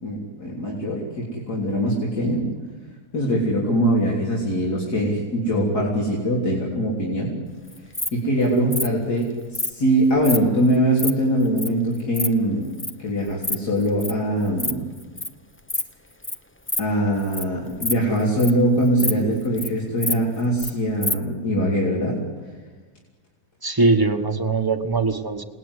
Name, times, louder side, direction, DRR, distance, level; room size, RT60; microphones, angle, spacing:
voice 1, 0.0-2.4 3.1-7.3 8.1-12.7 13.0-14.9 16.8-22.2, right 1 dB, 85° left, -4 dB, 4.2 m, -22 dB
Insect, 7.7-8.1 8.7-8.9 9.5-9.7 10.2-10.4 10.7-11.1 11.6-11.7 11.9-12.3 12.8-12.9 13.3-13.6 13.8-14.1 14.5-14.7 15.0-15.3 15.7-15.9 16.2-16.3 16.7-16.8 17.2-17.4 17.7-18.6 19.0-19.1 19.4-19.7 20.0-20.7 21.0-21.1, left 2 dB, 10° left, 0.6 m, -26 dB
voice 2, 23.6-25.4, right 3 dB, 15° right, 8 dB, 1.2 m, -21 dB
28.5 x 19.5 x 9.8 m, 1.4 s
omnidirectional pair, 1.7 m